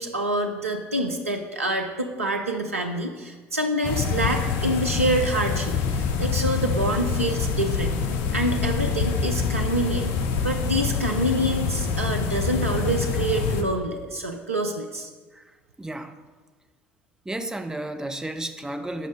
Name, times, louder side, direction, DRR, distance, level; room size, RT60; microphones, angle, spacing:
voice 1, 0.0-8.0 8.3-10.1 10.4-15.1, right 1 dB, 85° right, 3 dB, 0.4 m, -26 dB
sound 1, 3.8-13.6, left 6 dB, 60° left, 0.6 m, -26 dB
voice 2, 15.8-16.1 17.3-19.1, right 1 dB, 10° right, 7 dB, 0.6 m, -32 dB
6.5 x 5.1 x 5.0 m, 1.4 s
figure-of-eight pair, 60°, 7 cm